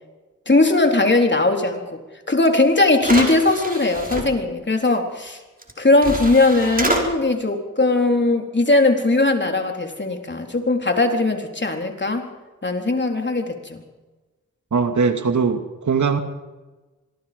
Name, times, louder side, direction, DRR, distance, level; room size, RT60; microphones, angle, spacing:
voice 1, 0.5-2.0 2.3-5.4 5.8-12.3 12.6-13.8, left 2 dB, 35° left, 4 dB, 4.1 m, -19 dB
sound 1, 2.4-2.5 3.0-4.2 5.6-5.7 6.0-7.0, right 1 dB, 25° right, 5.0 m, -26 dB
voice 2, 14.7-16.2, right 5 dB, 65° right, 7 dB, 2.4 m, -20 dB
26.5 x 19.5 x 5.4 m, 1.2 s
cardioid pair, 45°, 31 cm